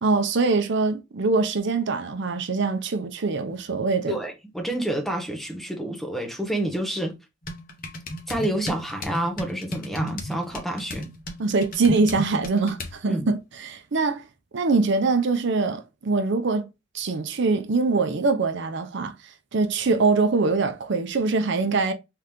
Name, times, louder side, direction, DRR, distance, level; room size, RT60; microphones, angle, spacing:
voice 1, 0.0-4.2 11.4-14.3 14.5-16.7 16.9-21.9, right 3 dB, 60° right, 0.6 m, -23 dB
voice 2, 4.1-7.1 8.3-11.1 13.1-13.3, right 1 dB, ahead, 0.8 m, -28 dB
sound 1, 7.4-13.0, equal, 45° left, 0.9 m, -35 dB
3.7 x 3.0 x 3.4 m
head